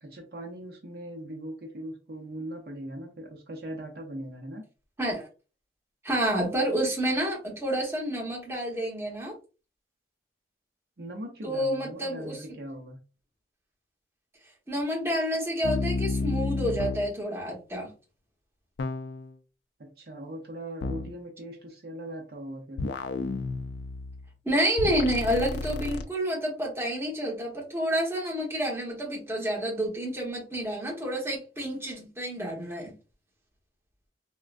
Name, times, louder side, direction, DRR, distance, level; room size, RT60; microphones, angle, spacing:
voice 1, 0.0-4.6 11.0-13.0 19.8-22.8, right 1 dB, 60° right, 0.7 m, -40 dB
voice 2, 6.0-9.3 11.4-12.4 14.7-17.9 24.4-32.9, equal, 15° right, 1.1 m, -29 dB
sound 1, 15.6-17.1 18.8-19.3 20.8-21.1 22.8-24.3 24.8-26.0, left 3 dB, 70° left, 0.4 m, -31 dB
3.5 x 2.2 x 2.5 m
head